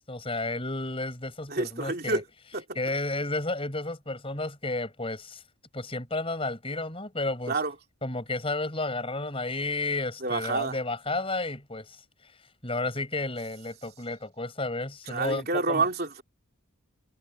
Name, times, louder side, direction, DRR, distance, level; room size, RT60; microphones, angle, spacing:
voice 1, 0.1-2.2 2.8-5.4 5.7-7.6 8.0-11.9 12.6-15.8, left 2 dB, 25° left, 5.6 m, -32 dB
voice 2, 1.5-2.2 2.5-2.6 7.5-7.7 10.2-10.8 15.1-16.2, right 3 dB, 45° right, 3.2 m, -28 dB
head